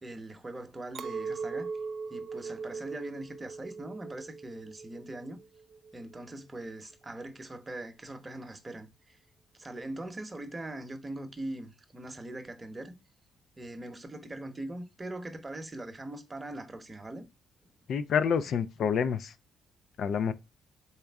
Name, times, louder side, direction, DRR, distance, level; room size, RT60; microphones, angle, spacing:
voice 1, 0.0-1.7 2.1-5.4 5.9-9.2 9.6-13.0 13.6-17.3, right 1 dB, 20° right, 0.9 m, -41 dB
Chink clink, 0.9-6.3, right 4 dB, 55° right, 0.4 m, -40 dB
voice 2, 17.9-19.3 20.0-20.3, left 7 dB, 65° left, 0.4 m, -28 dB
4.2 x 3.5 x 3.5 m
cardioid pair, 90°, 0 cm